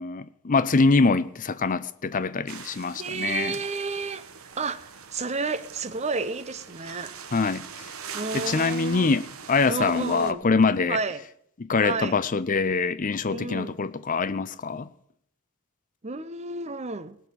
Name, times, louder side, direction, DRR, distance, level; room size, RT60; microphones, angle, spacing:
voice 1, 0.0-3.6 7.3-7.9 8.3-11.0 11.6-14.9, left 4 dB, 35° left, 0.5 m, -24 dB
sound 1, 2.5-10.3, right 7 dB, 70° right, 1.1 m, -42 dB
voice 2, 2.9-4.3 4.6-7.2 8.1-9.1 9.7-10.5 10.9-11.2 11.8-12.2 13.3-13.8 16.0-17.2, right 4 dB, 30° right, 0.6 m, -31 dB
18.5 x 6.4 x 9.0 m
head